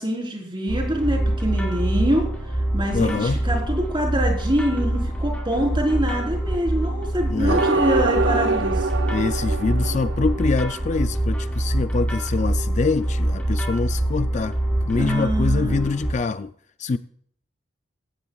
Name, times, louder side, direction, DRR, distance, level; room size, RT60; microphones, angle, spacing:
voice 1, 0.0-2.3 2.7-8.9 14.9-15.9, equal, 25° right, 3.8 m, -25 dB
sound 1, 0.7-16.1, right 1 dB, 5° left, 4.3 m, -25 dB
voice 2, 2.9-3.4 7.3-7.7 9.1-14.6 14.8-16.5 16.8-17.0, left 4 dB, 40° left, 0.4 m, -25 dB
sound 2, 7.5-10.8, right 3 dB, 75° right, 0.6 m, -24 dB
18.0 x 14.5 x 2.3 m
head